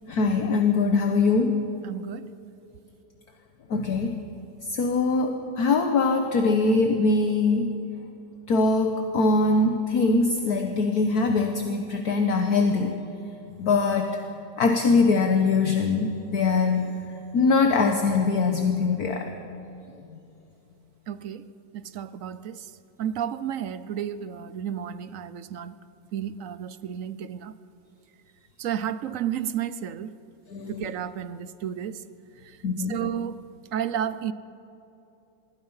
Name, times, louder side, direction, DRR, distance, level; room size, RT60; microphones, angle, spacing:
voice 1, 0.0-1.6 3.7-4.2 4.6-7.8 8.5-13.0 13.6-17.0 17.3-19.3 30.5-30.9 32.6-33.0, left 3 dB, 60° left, 1.6 m, -23 dB
voice 2, 1.8-2.3 21.1-22.7 23.0-25.7 26.1-27.5 28.6-30.1 30.8-32.0 32.4-32.6 32.9-33.4 33.7-34.3, right 9 dB, 60° right, 0.9 m, -32 dB
25.5 x 21.5 x 5.6 m
omnidirectional pair, 1.9 m